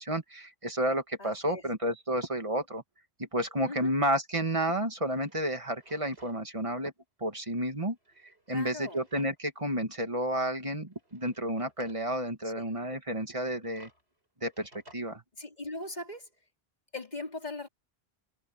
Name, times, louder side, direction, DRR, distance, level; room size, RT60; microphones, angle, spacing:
voice 1, 0.0-2.8 3.2-6.9 7.2-8.0 8.5-13.9 14.4-15.2, equal, 30° right, 2.3 m, -31 dB
voice 2, 1.2-1.6 3.7-3.9 8.5-9.0 12.4-12.6 15.4-16.3 16.9-17.7, left 2 dB, 40° left, 4.1 m, -40 dB
Drawer open or close, 5.0-6.4 6.7-6.8 7.9-9.6 10.0-10.1 10.9-12.1 13.2-15.0, right 1 dB, 80° right, 6.9 m, -60 dB
omnidirectional pair, 1.1 m